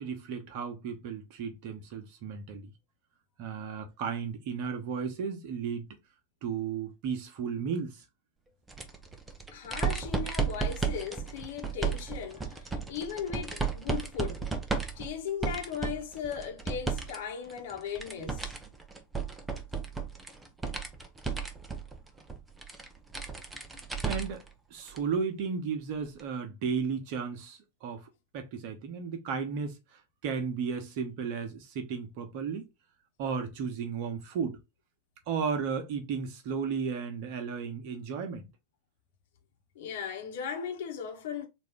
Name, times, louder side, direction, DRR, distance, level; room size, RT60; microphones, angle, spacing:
voice 1, 0.0-2.7 3.4-5.9 6.4-8.0 24.0-24.4 24.7-28.1 28.3-29.8 30.2-32.7 33.2-34.6 35.3-38.5, right 6 dB, 45° right, 1.1 m, -34 dB
sound 1, 8.7-17.2 17.5-24.5 24.9-25.0 26.2-26.3, right 5 dB, 10° right, 0.7 m, -34 dB
voice 2, 9.5-14.5 14.9-18.5 39.7-41.5, left 8 dB, 55° left, 1.1 m, -37 dB
4.0 x 2.7 x 3.3 m
figure-of-eight pair, 90°, 0 cm